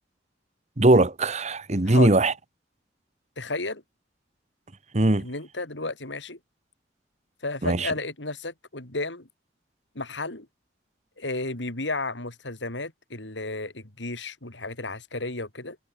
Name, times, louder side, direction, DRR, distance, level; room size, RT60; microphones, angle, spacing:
voice 1, 0.8-2.3 4.9-5.2 7.6-7.9, right 2 dB, 40° right, 1.3 m, -20 dB
voice 2, 3.4-3.8 5.2-6.4 7.4-9.3 9.9-10.5 11.2-15.8, left 2 dB, 85° left, 4.3 m, -33 dB
head